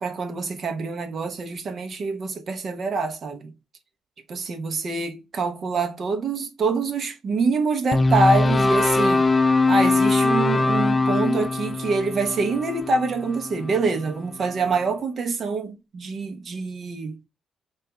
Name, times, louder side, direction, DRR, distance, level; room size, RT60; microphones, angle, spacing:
voice 1, 0.0-3.5 4.3-9.3 9.7-17.3, right 3 dB, 50° right, 0.9 m, -25 dB
sound 1, 7.9-14.1, left 3 dB, 25° left, 0.3 m, -21 dB
5.4 x 2.5 x 3.7 m
cardioid pair, 90°, 0 cm